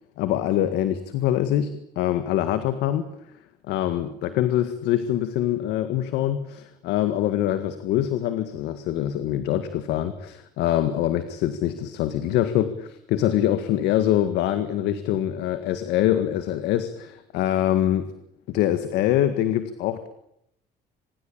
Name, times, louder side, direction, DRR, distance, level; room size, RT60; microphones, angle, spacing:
voice 1, 0.2-3.1 3.7-18.1 18.5-20.1, left 12 dB, 90° left, 10 dB, 1.8 m, -24 dB
25.5 x 21.5 x 8.8 m, 0.78 s
cardioid pair, 110°, 17 cm